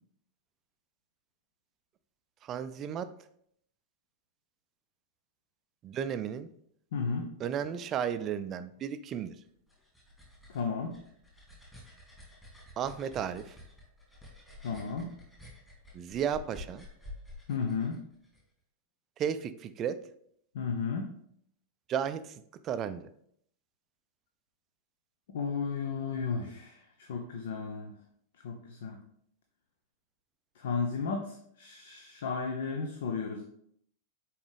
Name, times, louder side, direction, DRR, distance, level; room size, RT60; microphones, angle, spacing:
voice 1, 2.4-3.1 5.8-6.5 7.4-9.4 12.8-13.6 15.9-16.8 19.2-20.0 21.9-23.1, right 8 dB, 30° right, 12 dB, 0.4 m, -34 dB
voice 2, 6.9-7.3 10.5-11.0 14.6-15.1 17.5-18.0 20.5-21.1 25.3-27.9 28.4-29.0 30.6-33.4, left 5 dB, 60° left, 3 dB, 0.7 m, -34 dB
sound 1, 9.4-18.4, left 1 dB, 10° left, 2.5 m, -50 dB
7.1 x 4.6 x 3.4 m, 0.68 s
figure-of-eight pair, 90°, 0 cm